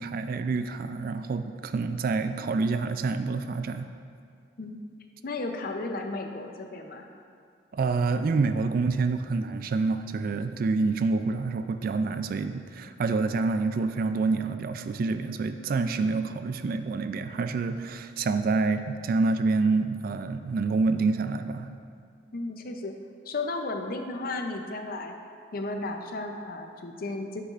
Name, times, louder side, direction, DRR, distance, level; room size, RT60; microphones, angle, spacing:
voice 1, 0.0-3.9 7.7-21.7, right 3 dB, 50° right, 9 dB, 0.3 m, -27 dB
voice 2, 5.2-7.1 22.3-22.9 23.3-25.1 25.5-27.4, left 2 dB, 55° left, 4 dB, 0.6 m, -34 dB
9.3 x 6.8 x 2.5 m, 2.3 s
head